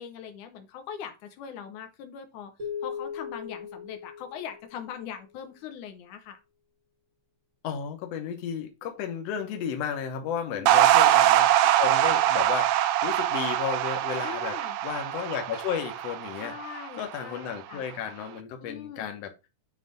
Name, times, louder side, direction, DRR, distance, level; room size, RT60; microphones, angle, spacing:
voice 1, 0.0-2.5 2.8-6.4 10.5-10.9 14.2-14.8 16.4-17.8 18.6-19.2, left 8 dB, 85° left, 2.2 m, -41 dB
sound 1, 2.6-5.2, left 7 dB, 45° right, 1.2 m, -38 dB
voice 2, 7.6-16.5 16.9-19.3, left 8 dB, 65° left, 1.9 m, -33 dB
sound 2, 10.7-17.1, right 13 dB, 90° right, 1.4 m, -23 dB
7.4 x 3.3 x 3.9 m
omnidirectional pair, 3.5 m